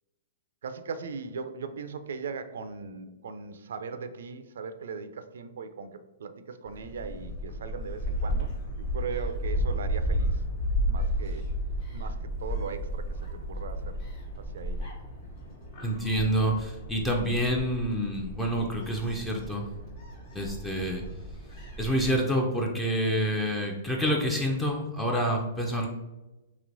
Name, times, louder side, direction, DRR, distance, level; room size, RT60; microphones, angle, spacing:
voice 1, 0.6-8.5 8.8-10.4 10.8-11.4 11.9-13.2 13.5-14.0 14.5-14.9, right 5 dB, 75° right, 10 dB, 0.3 m, -39 dB
Gull seagull, 6.7-22.1, equal, 50° left, 1.2 m, -33 dB
voice 2, 15.8-19.6 20.3-21.0 21.8-25.9, equal, 10° left, 0 dB, 0.4 m, -27 dB
3.0 x 2.9 x 2.5 m, 1.1 s
hypercardioid pair, 130°, 0 cm